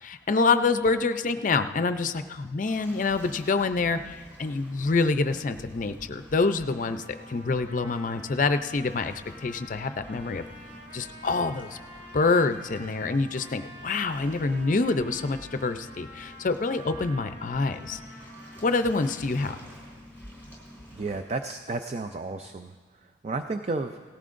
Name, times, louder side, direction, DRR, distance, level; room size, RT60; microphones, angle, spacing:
voice 1, 0.0-10.4 10.9-11.8 12.1-18.0 18.6-19.6, left 3 dB, 45° left, 10 dB, 0.5 m, -26 dB
Waves surf, 2.7-21.2, equal, 10° right, 3.8 m, -49 dB
Trumpet, 6.8-19.3, equal, 85° right, 2.7 m, -48 dB
voice 2, 20.9-22.7 23.2-24.0, right 3 dB, 35° right, 7 dB, 0.4 m, -32 dB
18.0 x 14.5 x 2.5 m, 1.5 s
head